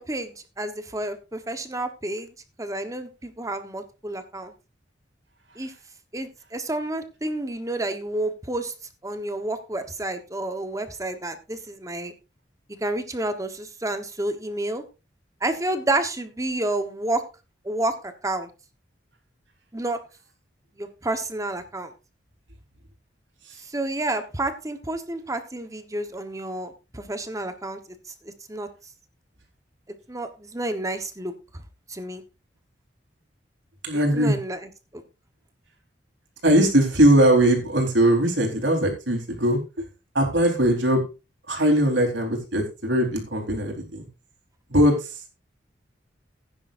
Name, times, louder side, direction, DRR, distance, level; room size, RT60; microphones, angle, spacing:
voice 1, 0.0-2.3 2.6-4.5 5.6-5.7 6.1-8.7 9.0-12.1 12.8-14.8 15.4-17.2 17.6-18.5 19.7-20.0 20.8-21.9 23.6-27.8 28.2-28.7 30.1-31.3 31.9-32.2 34.1-35.0, right 2 dB, 20° right, 8 dB, 1.1 m, -30 dB
voice 2, 33.8-34.4 36.4-39.8 40.1-41.0 41.5-44.1 44.7-45.2, right 1 dB, 80° right, 3 dB, 4.0 m, -20 dB
16.0 x 9.9 x 2.6 m, 0.29 s
head